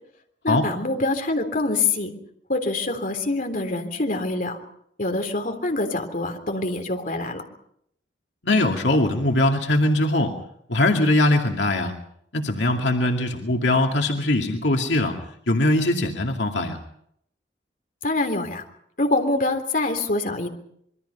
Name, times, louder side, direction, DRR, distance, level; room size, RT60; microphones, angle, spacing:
voice 1, 0.4-2.1 2.5-4.6 5.0-7.4 18.0-18.6 19.0-20.5, left 2 dB, 50° left, 5 dB, 3.5 m, -25 dB
voice 2, 8.4-10.3 10.7-11.9 12.3-15.2 15.5-16.8, left 1 dB, 80° left, 2 dB, 2.4 m, -21 dB
27.0 x 23.0 x 5.6 m, 0.70 s
head